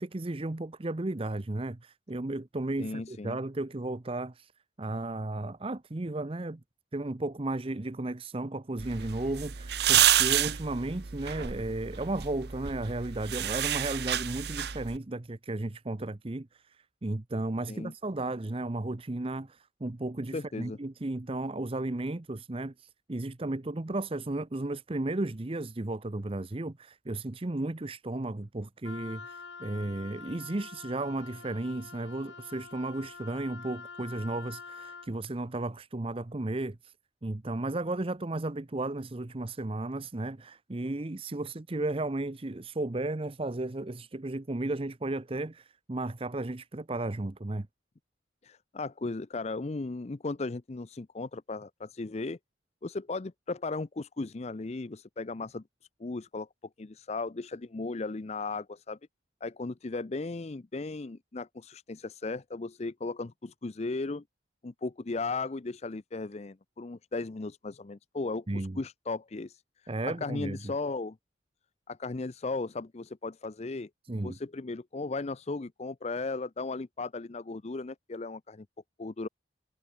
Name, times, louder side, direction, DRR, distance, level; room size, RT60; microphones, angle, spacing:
voice 1, 0.0-4.5 4.8-6.6 6.9-36.9 37.2-47.7 68.5-68.8 69.9-70.7 74.0-74.4, right 2 dB, 30° right, 0.7 m, -34 dB
voice 2, 2.8-3.4 17.7-17.9 20.3-20.8 48.4-52.4 52.8-55.6 56.0-56.5 56.8-59.0 59.4-64.2 64.6-71.2 71.9-73.9 74.2-78.7 79.0-79.3, left 3 dB, 35° left, 0.5 m, -36 dB
sound 1, 8.8-15.0, right 11 dB, 60° right, 0.9 m, -29 dB
Wind instrument woodwind instrument, 28.8-35.1, left 5 dB, 75° left, 2.4 m, -46 dB
head